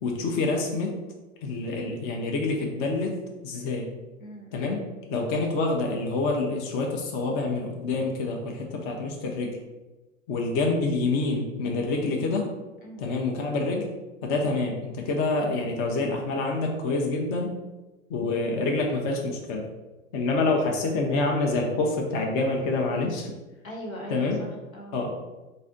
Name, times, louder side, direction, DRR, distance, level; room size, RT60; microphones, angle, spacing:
voice 1, 0.0-0.9 1.4-3.9 4.5-4.8 5.1-9.6 10.3-12.5 13.0-13.9 14.2-17.5 18.1-19.6 20.1-23.3 24.1-24.4 24.9-25.1, left 3 dB, 25° left, 1 dB, 0.5 m, -27 dB
voice 2, 4.2-4.7 12.8-13.0 23.6-25.0, equal, 75° left, 0 dB, 1.3 m, -40 dB
4.0 x 2.6 x 3.8 m, 1.1 s
figure-of-eight pair, 100°, 41 cm